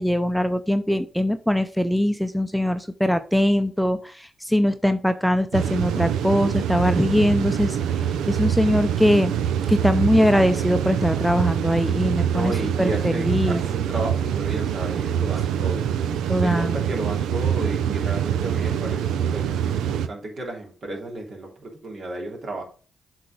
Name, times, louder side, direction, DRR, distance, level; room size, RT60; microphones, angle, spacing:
voice 1, 0.0-9.3 9.7-13.6 16.1-16.8, equal, ahead, 9 dB, 0.7 m, -22 dB
sound 1, 5.5-20.1, right 9 dB, 80° right, 0.6 m, -25 dB
voice 2, 12.3-15.9 16.4-22.6, right 2 dB, 55° right, 0 dB, 3.2 m, -33 dB
7.6 x 4.5 x 5.1 m, 0.40 s
supercardioid pair, 45°, 0 cm